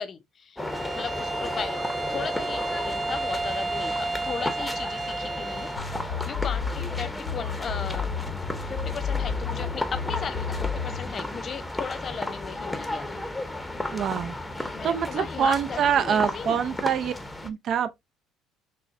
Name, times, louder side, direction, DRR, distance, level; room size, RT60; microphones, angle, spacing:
voice 1, 0.0-8.1 8.7-13.3 14.7-16.6, left 6 dB, 45° left, 0.6 m, -37 dB
sound 1, 0.6-17.5, left 1 dB, 10° left, 0.7 m, -34 dB
Bowed string instrument, 0.6-5.9, right 3 dB, 40° right, 2.3 m, -32 dB
sound 2, 5.8-11.1, left 7 dB, 90° left, 0.5 m, -32 dB
voice 2, 13.9-14.4 14.8-17.1 17.4-18.0, right 8 dB, 55° right, 0.5 m, -25 dB
6.1 x 2.1 x 2.5 m
supercardioid pair, 80°, 0 cm